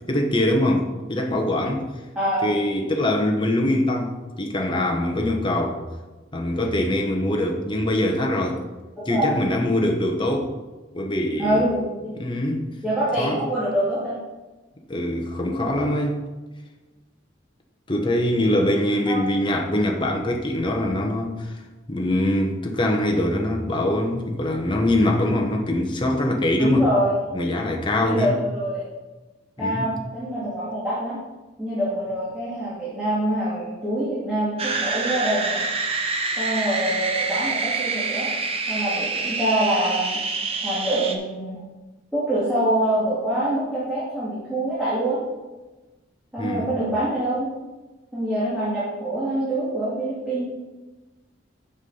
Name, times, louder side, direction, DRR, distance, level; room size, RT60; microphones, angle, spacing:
voice 1, 0.1-1.9 2.4-4.1 4.4-5.8 6.3-8.6 9.1-10.5 10.9-11.6 12.2-12.6 13.2-13.4 14.9-16.2 17.9-21.5 21.9-26.9 27.3-28.4 29.6-29.8 46.4-46.7, left 1 dB, 25° left, 2 dB, 1.1 m, -23 dB
voice 2, 2.2-2.6 9.1-9.5 11.4-12.0 12.8-14.1 19.1-19.2 26.6-27.2 28.0-28.8 29.6-31.2 31.6-35.6 36.4-38.3 38.7-40.2 40.6-41.6 42.1-45.2 46.3-47.5 48.1-50.5, right 1 dB, 5° right, -11 dB, 2.4 m, -25 dB
sound 1, 34.6-41.1, right 3 dB, 30° right, 0.8 m, -26 dB
7.1 x 7.0 x 5.5 m, 1.2 s
head